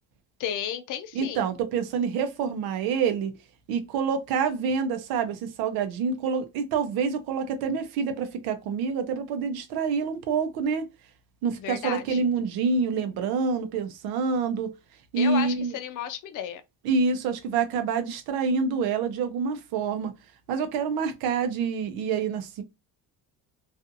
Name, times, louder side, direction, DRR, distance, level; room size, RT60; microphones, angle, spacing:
voice 1, 0.4-1.5 11.6-12.2 15.2-16.6, left 10 dB, 60° left, 0.5 m, -33 dB
voice 2, 1.1-3.3 3.7-10.9 11.4-14.7 15.1-15.7 16.8-20.1 20.5-22.6, right 5 dB, 90° right, 0.6 m, -27 dB
2.5 x 2.4 x 2.6 m
cardioid pair, 125°, 36 cm